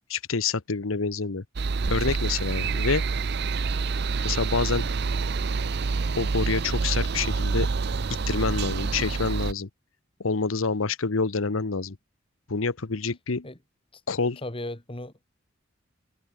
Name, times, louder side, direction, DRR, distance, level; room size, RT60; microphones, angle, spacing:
voice 1, 0.1-1.4 1.9-3.0 4.2-4.9 6.2-7.7 8.3-9.7 10.2-12.0 12.5-13.5 14.1-14.4, left 4 dB, 85° left, 1.0 m, -27 dB
sound 1, 1.6-9.5, right 4 dB, 55° right, 0.6 m, -27 dB
voice 2, 14.4-15.2, left 1 dB, 25° left, 2.5 m, -36 dB
head